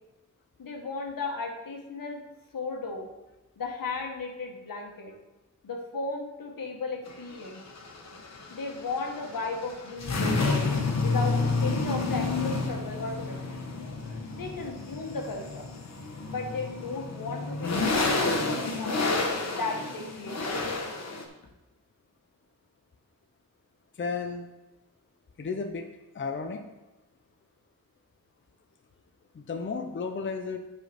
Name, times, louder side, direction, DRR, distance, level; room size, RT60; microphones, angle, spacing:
voice 1, 0.6-2.2 2.5-3.1 3.6-5.1 5.6-7.6 8.5-10.6 11.0-11.4 11.6-13.6 14.3-15.7 16.3-20.6, left 3 dB, 85° left, 1 dB, 1.4 m, -35 dB
sound 1, 7.1-21.2, left 3 dB, 50° left, 1.2 m, -30 dB
voice 2, 24.0-24.5 25.4-25.9 26.1-26.6 29.3-30.6, left 4 dB, 35° left, 5 dB, 0.6 m, -33 dB
9.1 x 4.9 x 4.4 m, 1.0 s
wide cardioid pair, 120°, 33 cm